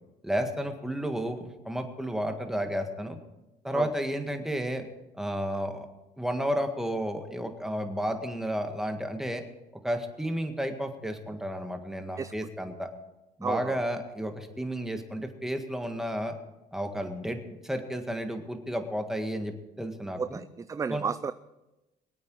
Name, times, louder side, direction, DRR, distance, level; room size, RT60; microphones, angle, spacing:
voice 1, 0.2-3.2 3.6-4.9 5.1-5.9 6.2-9.4 9.8-12.9 13.4-16.3 16.7-20.4 20.9-21.0, equal, 5° right, 5 dB, 1.8 m, -32 dB
voice 2, 13.4-13.8 20.2-21.3, right 6 dB, 20° right, 13 dB, 0.4 m, -32 dB
23.5 x 8.6 x 4.8 m, 1.0 s
cardioid pair, 110°, 17 cm